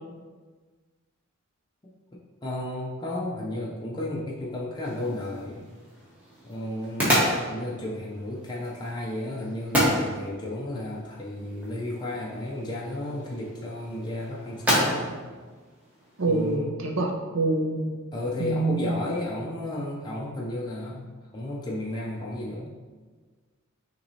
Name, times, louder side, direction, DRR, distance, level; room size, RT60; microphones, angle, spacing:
voice 1, 2.1-5.6 6.4-15.2 16.3-16.7 18.1-21.1 21.3-22.7, left 1 dB, 20° left, -5 dB, 0.5 m, -33 dB
sound 1, 4.8-16.5, equal, 5° right, 1.2 m, -31 dB
voice 2, 16.2-17.9 18.4-18.9, right 2 dB, 65° right, 1 dB, 0.7 m, -26 dB
5.8 x 3.0 x 2.7 m, 1.4 s
head